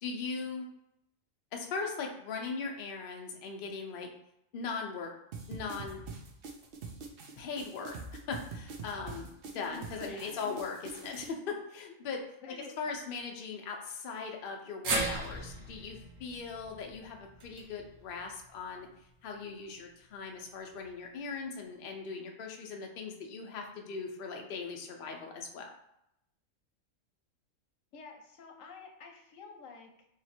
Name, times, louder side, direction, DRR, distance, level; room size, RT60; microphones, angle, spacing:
voice 1, 0.0-0.7 1.5-4.1 4.5-5.1 5.5-6.0 7.4-12.2 12.8-18.9 19.2-25.7, left 4 dB, 55° left, 2 dB, 0.7 m, -39 dB
sound 1, 5.3-11.3, right 4 dB, 55° right, 0.7 m, -44 dB
voice 2, 9.5-10.6 11.1-11.2 12.4-12.9 27.9-30.1, left 4 dB, 85° left, 2 dB, 1.1 m, -49 dB
sound 2, 14.8-19.1 19.5-19.6 20.7-20.8, right 2 dB, 80° right, 1.1 m, -38 dB
3.0 x 2.8 x 4.2 m, 0.80 s
omnidirectional pair, 1.3 m